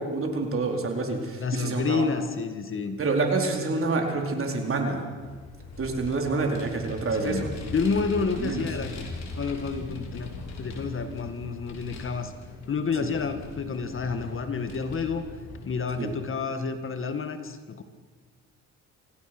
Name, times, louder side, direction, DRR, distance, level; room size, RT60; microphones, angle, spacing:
voice 1, 0.0-2.1 3.0-5.0 5.8-7.5 8.4-8.6 13.0-13.1 16.0-16.1, right 3 dB, 45° right, 2 dB, 4.4 m, -27 dB
voice 2, 1.4-3.0 7.2-9.0 9.4-10.3 10.6-12.3 12.7-15.3 15.7-17.8, left 5 dB, 45° left, 9 dB, 1.9 m, -29 dB
Vehicle, 5.2-16.1, left 2 dB, 60° left, 4.4 m, -40 dB
26.0 x 17.0 x 6.2 m, 1.5 s
cardioid pair, 90°, 30 cm